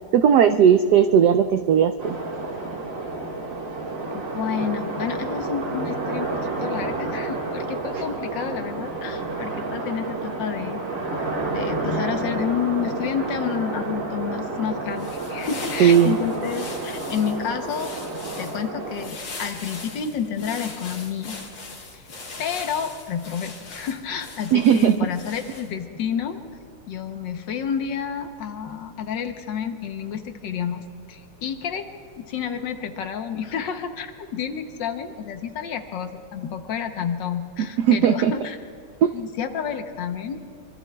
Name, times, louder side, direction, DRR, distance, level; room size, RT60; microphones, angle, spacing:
voice 1, 0.1-2.1 15.8-16.1 24.5-25.1 37.6-38.3 39.0-39.1, right 8 dB, 80° right, 8 dB, 0.9 m, -17 dB
sound 1, 2.0-19.1, right 3 dB, 40° right, 2.0 m, -30 dB
voice 2, 4.1-10.8 11.5-17.9 18.4-21.4 21.9-22.1 22.4-26.4 26.9-31.9 32.2-38.6 39.1-40.4, left 7 dB, 65° left, 7 dB, 1.4 m, -30 dB
sound 2, 14.8-25.8, left 3 dB, 85° left, 3.1 m, -40 dB
25.5 x 24.5 x 2.3 m, 2.5 s
omnidirectional pair, 2.3 m